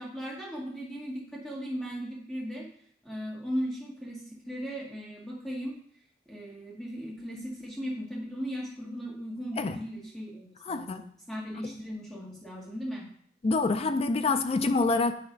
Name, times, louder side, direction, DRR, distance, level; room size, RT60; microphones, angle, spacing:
voice 1, 0.0-2.7 3.0-5.8 6.3-13.1, equal, 5° left, -5 dB, 1.8 m, -37 dB
voice 2, 10.7-11.0 13.4-15.1, left 3 dB, 30° left, 9 dB, 0.4 m, -26 dB
8.5 x 3.1 x 5.2 m, 0.62 s
head